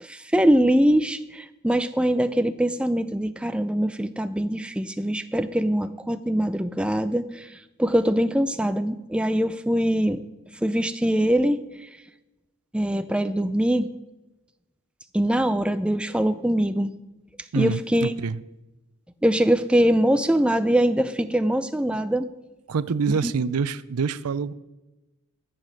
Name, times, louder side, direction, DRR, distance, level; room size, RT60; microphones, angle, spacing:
voice 1, 0.0-7.5 7.8-10.2 10.6-11.6 12.7-13.9 15.1-16.9 17.6-18.1 19.2-22.3 23.2-23.3, equal, 5° right, 0.4 m, -23 dB
voice 2, 17.5-18.4 22.7-24.5, right 5 dB, 90° right, 0.5 m, -26 dB
14.0 x 7.5 x 6.4 m
head